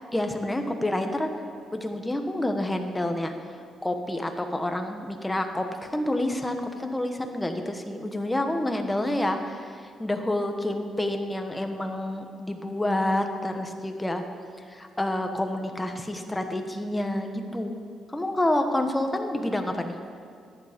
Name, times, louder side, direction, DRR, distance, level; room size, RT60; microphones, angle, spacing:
voice 1, 0.1-1.3 1.7-3.3 3.8-14.2 14.7-17.8 18.1-20.0, left 1 dB, 10° left, 5 dB, 1.3 m, -28 dB
13.5 x 11.0 x 5.3 m, 2.3 s
cardioid pair, 90°, 0 cm